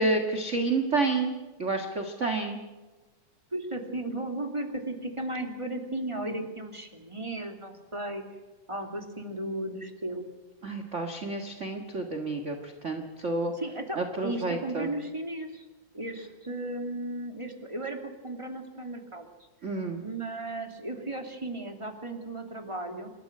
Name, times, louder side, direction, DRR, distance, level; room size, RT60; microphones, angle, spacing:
voice 1, 0.0-1.3 1.6-2.6 10.6-13.5 13.9-14.9 19.6-20.0, right 3 dB, 30° right, 4 dB, 1.6 m, -29 dB
voice 2, 3.5-8.2 8.7-10.2 13.5-15.7 15.9-19.3 20.0-23.1, right 1 dB, 10° right, 4 dB, 2.2 m, -35 dB
28.5 x 13.5 x 7.9 m, 1.2 s
omnidirectional pair, 3.3 m